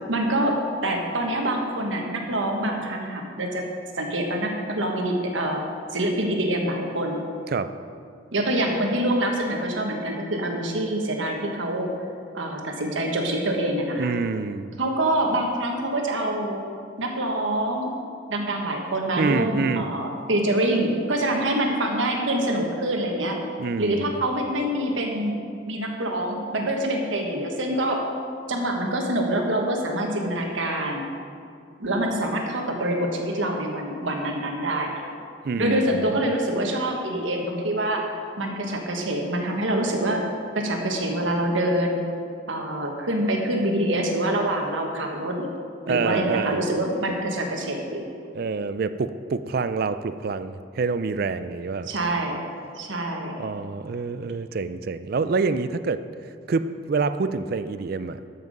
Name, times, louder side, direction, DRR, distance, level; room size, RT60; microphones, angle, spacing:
voice 1, 0.1-3.6 4.0-5.6 5.9-7.2 8.3-11.9 12.3-14.1 14.8-16.6 17.0-18.0 18.3-23.4 23.8-25.4 25.7-28.1 28.5-31.0 31.8-35.1 35.6-38.0 38.4-40.2 40.5-42.0 42.5-45.5 45.9-48.1 51.8-52.4 52.8-53.5, right 1 dB, 80° right, 2 dB, 1.4 m, -25 dB
voice 2, 14.0-14.7 19.2-19.9 23.6-24.1 35.4-36.2 45.9-46.7 48.3-51.9 53.4-56.0 56.5-58.2, right 4 dB, 50° right, 12 dB, 0.4 m, -27 dB
12.5 x 5.9 x 5.3 m, 2.4 s
head